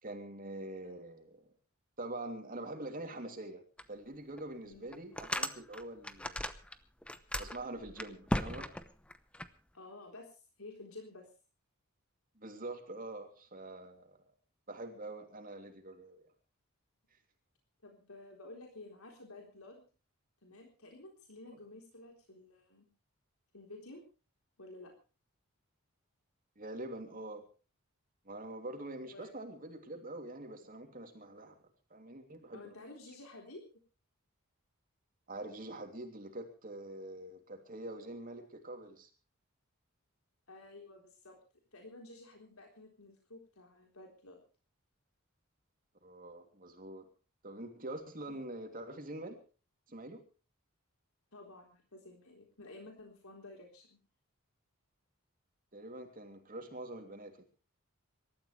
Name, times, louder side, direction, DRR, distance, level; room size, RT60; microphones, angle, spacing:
voice 1, 0.0-1.5 2.0-3.6 3.9-6.5 7.4-8.7 12.4-14.2 14.7-16.2 26.6-27.4 28.2-31.6 31.9-32.7 35.3-39.1 46.0-47.1 47.4-49.4 49.9-50.2 55.7-57.4, right 1 dB, 40° right, 4 dB, 3.0 m, -45 dB
sound 1, 3.8-3.9 4.4-4.5 4.9-6.7 7.0-9.5, left 1 dB, 5° left, 0.8 m, -37 dB
voice 2, 9.7-11.2 17.8-19.8 20.4-22.9 23.5-24.0 24.6-24.9 29.1-29.3 32.5-33.6 40.5-41.4 41.7-44.4 48.3-48.4 51.3-54.0, left 2 dB, 80° left, 1 dB, 3.9 m, -52 dB
26.0 x 13.5 x 3.3 m, 0.35 s
head